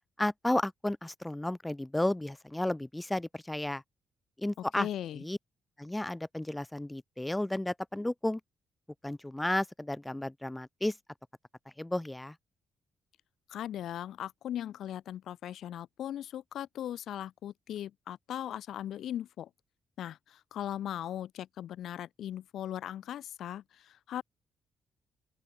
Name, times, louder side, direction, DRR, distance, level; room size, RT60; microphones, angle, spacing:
voice 1, 0.2-3.8 4.4-4.9 5.1-5.4 5.8-8.4 9.0-11.0 11.8-12.4, left 1 dB, 10° left, 4.7 m, -33 dB
voice 2, 4.7-5.2 13.5-19.5 20.0-24.2, left 11 dB, 75° left, 2.4 m, -38 dB
open air
supercardioid pair, 55°, 0 cm